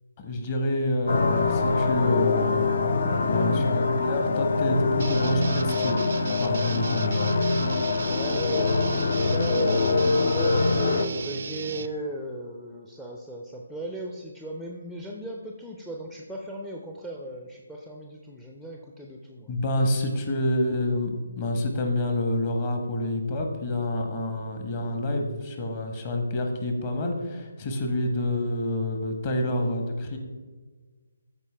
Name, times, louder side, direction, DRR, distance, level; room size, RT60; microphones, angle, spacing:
voice 1, 0.2-6.0 6.4-7.4 19.5-21.1 21.4-30.2, left 1 dB, 30° left, 3 dB, 1.2 m, -28 dB
sound 1, 1.1-11.1, left 3 dB, 50° left, 0.5 m, -24 dB
sound 2, 5.0-11.9, right 5 dB, 50° right, 0.4 m, -35 dB
voice 2, 7.9-19.5, right 1 dB, 5° left, 0 dB, 0.5 m, -37 dB
13.5 x 4.6 x 3.4 m, 1.4 s
figure-of-eight pair, 145°, 0 cm